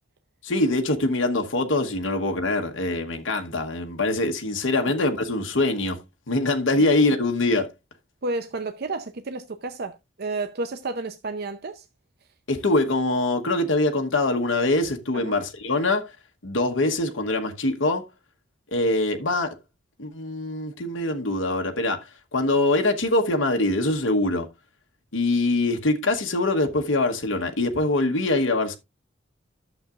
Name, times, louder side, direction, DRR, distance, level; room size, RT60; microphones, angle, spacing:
voice 1, 0.4-6.0 6.3-7.7 12.5-16.2 16.4-18.0 18.7-19.6 20.0-24.5 25.1-28.8, left 2 dB, 80° left, 1.1 m, -23 dB
voice 2, 8.2-11.9 15.1-15.4, right 3 dB, 55° right, 0.6 m, -31 dB
11.0 x 7.3 x 2.4 m
head